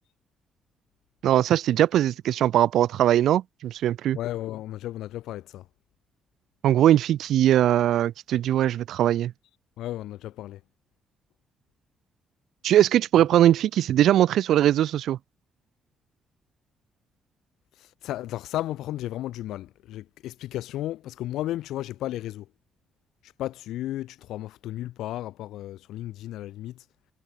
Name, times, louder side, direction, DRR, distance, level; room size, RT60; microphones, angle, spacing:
voice 1, 1.2-4.2 6.6-9.3 12.6-15.2, right 12 dB, 75° right, 0.4 m, -21 dB
voice 2, 4.1-5.6 9.8-10.6 17.8-22.5 23.2-26.8, left 14 dB, 85° left, 1.0 m, -34 dB
cardioid pair, 90°, 0 cm